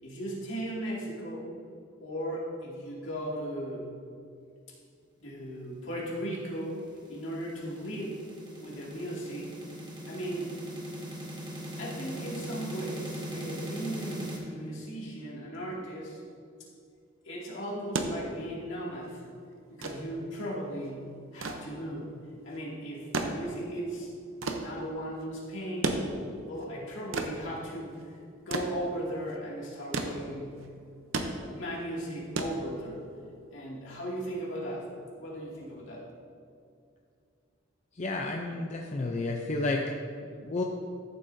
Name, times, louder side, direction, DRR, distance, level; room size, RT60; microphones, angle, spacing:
voice 1, 0.0-1.5 2.0-4.0 5.2-8.3 8.6-9.5 10.1-10.5 11.8-16.2 17.2-19.2 19.7-22.2 22.4-24.1 24.6-26.0 26.5-30.7 31.5-33.0 33.5-36.0, equal, 70° left, -5 dB, 2.4 m, -37 dB
sound 1, 6.3-14.4, equal, 20° right, 1.3 m, -40 dB
sound 2, 17.7-33.2 34.4-34.6, right 3 dB, 80° right, 0.7 m, -36 dB
voice 2, 37.9-39.8 40.2-40.6, left 2 dB, 35° left, 1 dB, 0.5 m, -31 dB
13.5 x 7.5 x 2.7 m, 2.4 s
head